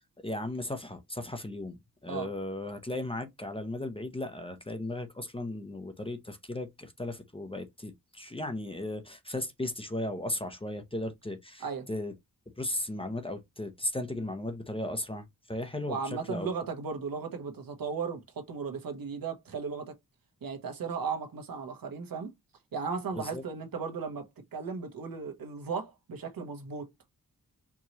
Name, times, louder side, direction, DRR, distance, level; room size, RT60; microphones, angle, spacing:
voice 1, 0.0-12.1 12.6-16.5 23.1-23.4, left 1 dB, 15° left, 0.6 m, -36 dB
voice 2, 15.9-20.0 20.4-22.3 22.7-26.9, right 5 dB, 70° right, 1.1 m, -36 dB
4.6 x 2.9 x 2.8 m
wide cardioid pair, 145°, 36 cm